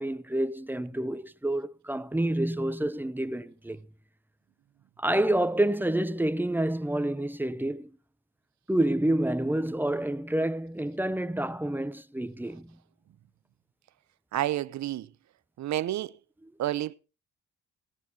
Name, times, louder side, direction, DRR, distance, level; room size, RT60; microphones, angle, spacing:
voice 1, 0.0-3.8 5.0-7.9 8.7-12.8, right 1 dB, 5° right, 0.7 m, -28 dB
voice 2, 14.3-15.1 15.6-16.2 16.6-16.9, right 13 dB, 65° right, 0.8 m, -29 dB
18.0 x 15.0 x 2.9 m
cardioid pair, 90°, 30 cm